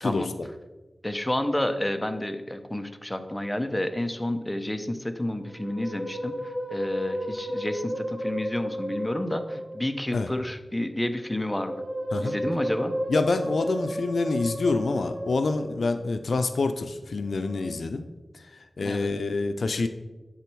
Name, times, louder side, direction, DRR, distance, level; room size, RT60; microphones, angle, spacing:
voice 1, 1.0-11.8 12.2-12.9 18.8-19.1, left 1 dB, 15° left, 8 dB, 0.7 m, -30 dB
Musical instrument, 5.3-9.9 11.2-16.1 17.2-17.6, equal, 10° right, 2.4 m, -33 dB
voice 2, 13.1-18.1 18.3-18.4 18.8-19.9, left 3 dB, 85° left, 9 dB, 0.4 m, -27 dB
10.0 x 4.1 x 4.6 m, 1.2 s
wide cardioid pair, 60°, 0 cm